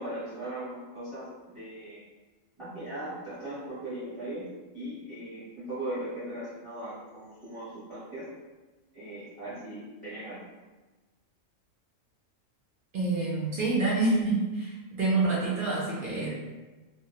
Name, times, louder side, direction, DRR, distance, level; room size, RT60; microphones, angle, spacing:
voice 1, 0.0-2.0 2.6-8.3 8.9-10.4, right 1 dB, 30° right, -12 dB, 0.7 m, -39 dB
voice 2, 12.9-16.3, right 3 dB, 65° right, -5 dB, 0.5 m, -27 dB
2.2 x 2.0 x 2.8 m, 1.2 s
omnidirectional pair, 1.4 m